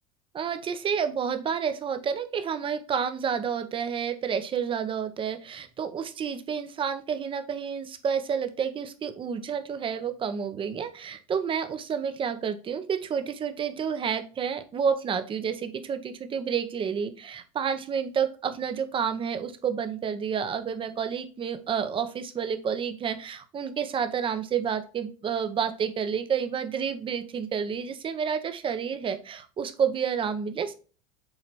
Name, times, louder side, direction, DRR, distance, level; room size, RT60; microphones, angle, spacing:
voice 1, 0.3-30.7, right 7 dB, 30° right, 10 dB, 0.9 m, -30 dB
7.9 x 2.9 x 4.1 m, 0.36 s
supercardioid pair, 110°, 18 cm